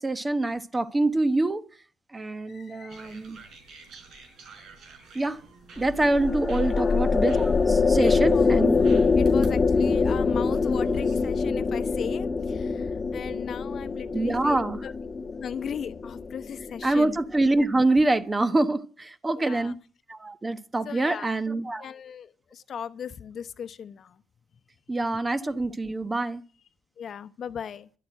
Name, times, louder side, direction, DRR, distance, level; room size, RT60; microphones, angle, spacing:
voice 1, 0.0-1.6 2.1-3.4 5.1-5.4 5.8-8.8 14.1-14.8 16.8-19.8 20.1-21.9 24.9-26.4, right 2 dB, 20° right, 1.0 m, -25 dB
voice 2, 2.5-3.0 6.7-7.0 8.0-8.6 9.2-14.9 15.4-17.2 19.4-19.7 20.8-21.3 21.8-24.2 27.0-27.9, left 8 dB, 55° left, 0.8 m, -38 dB
sound 1, 2.9-11.5, right 4 dB, 70° right, 4.4 m, -50 dB
sound 2, 5.8-17.2, left 4 dB, 30° left, 1.2 m, -24 dB
12.0 x 8.1 x 9.1 m
cardioid pair, 90°, 0 cm